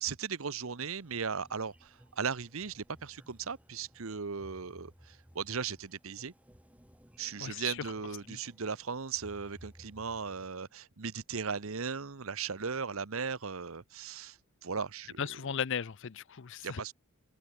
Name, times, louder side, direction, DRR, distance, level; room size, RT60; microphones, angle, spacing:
voice 1, 0.0-6.3 7.2-15.3 16.6-16.9, right 5 dB, 65° right, 0.9 m, -37 dB
sound 1, 0.8-10.5, equal, 5° right, 1.6 m, -59 dB
voice 2, 7.4-7.8 8.3-8.4 15.2-16.9, left 7 dB, 55° left, 0.6 m, -36 dB
open air
head